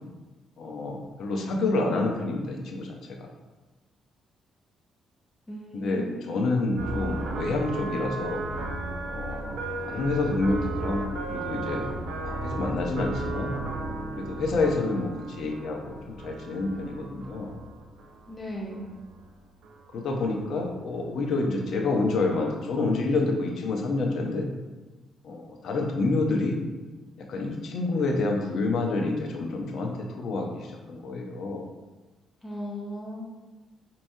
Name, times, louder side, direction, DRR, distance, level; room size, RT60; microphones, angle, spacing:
voice 1, 0.6-2.9 3.2-3.3 5.7-8.4 9.1-11.9 12.2-13.6 14.2-17.5 19.9-24.5 25.2-26.6 27.3-31.7, left 3 dB, 65° left, 1 dB, 0.7 m, -28 dB
voice 2, 5.5-6.5 18.3-18.9 32.4-33.2, equal, 15° left, -4 dB, 0.7 m, -37 dB
sound 1, 6.8-19.3 19.6-20.2 20.6-21.0 21.5-21.6 21.7-22.1 22.4-22.5, right 2 dB, 75° right, 0.6 m, -35 dB
4.6 x 2.9 x 2.7 m, 1.2 s
cardioid pair, 90°, 0 cm